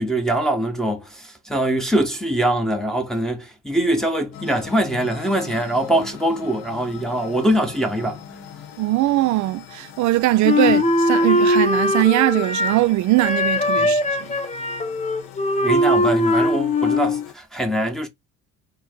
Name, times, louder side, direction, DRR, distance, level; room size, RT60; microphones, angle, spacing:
voice 1, 0.0-8.2 13.8-14.0 15.6-18.1, right 1 dB, ahead, 1.2 m, -23 dB
sound 1, 4.3-17.3, left 8 dB, 75° left, 0.9 m, -41 dB
voice 2, 8.8-14.3, right 16 dB, 50° right, 0.5 m, -20 dB
Wind instrument woodwind instrument, 10.4-12.9 13.2-17.3, left 1 dB, 20° left, 0.8 m, -20 dB
4.4 x 2.2 x 4.4 m
hypercardioid pair, 70°, 37 cm